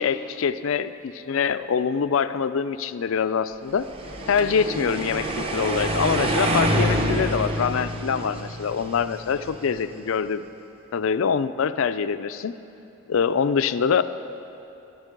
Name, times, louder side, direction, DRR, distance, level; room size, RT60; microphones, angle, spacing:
voice 1, 0.0-3.9 4.3-10.5 10.9-12.6 13.1-14.0, left 6 dB, 70° left, 13 dB, 0.4 m, -24 dB
sound 1, 3.8-10.0, right 1 dB, 25° right, 0.8 m, -27 dB
13.0 x 11.0 x 5.2 m, 2.9 s
head